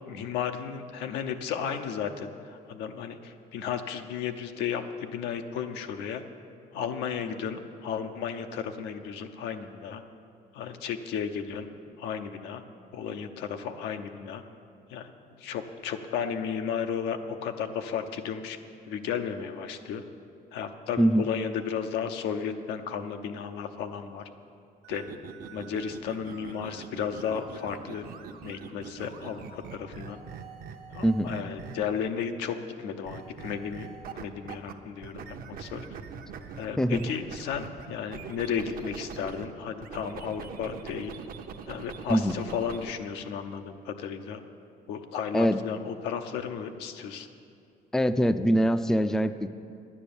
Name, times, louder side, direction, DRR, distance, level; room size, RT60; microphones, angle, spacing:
voice 1, 0.1-6.2 6.7-10.0 10.5-11.7 12.0-12.6 12.9-14.4 14.9-15.1 15.4-18.6 18.9-20.0 20.5-24.2 24.9-25.0 25.5-28.1 28.4-30.2 30.9-33.9 34.2-35.9 36.5-41.1 41.7-44.4 44.9-47.3, left 7 dB, 90° left, 7 dB, 0.8 m, -34 dB
sound 1, 24.8-32.0 33.0-34.7 35.0-39.5 39.8-42.9, right 6 dB, 60° right, 0.8 m, -43 dB
voice 2, 47.9-49.5, equal, 5° left, 10 dB, 0.4 m, -23 dB
9.9 x 9.8 x 7.0 m, 2.4 s
cardioid pair, 110°, 17 cm